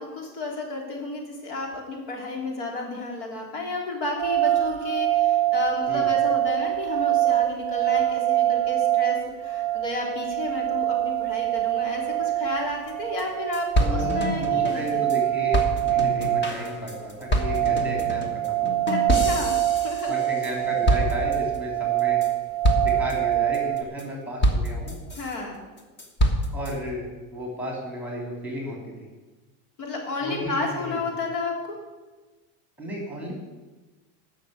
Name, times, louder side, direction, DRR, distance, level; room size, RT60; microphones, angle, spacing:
voice 1, 0.0-15.0 18.9-20.2 25.2-25.6 29.8-31.8, left 3 dB, 65° left, 0 dB, 3.6 m, -32 dB
sound 1, 4.2-23.8, right 14 dB, 50° right, 0.5 m, -25 dB
sound 2, 12.9-13.0 13.2-13.3 13.5-15.2 15.5-20.6 20.9-21.6 22.0-22.3 22.6-23.1 23.5-24.0 24.4-25.4 25.8-26.7, equal, 25° left, 1.5 m, -26 dB
voice 2, 13.8-15.6 15.9-18.7 20.1-22.2 22.8-25.0 26.5-28.9 30.2-31.0 32.8-33.3, equal, 5° right, -1 dB, 2.9 m, -33 dB
12.0 x 6.5 x 8.1 m, 1.2 s
cardioid pair, 145°, 46 cm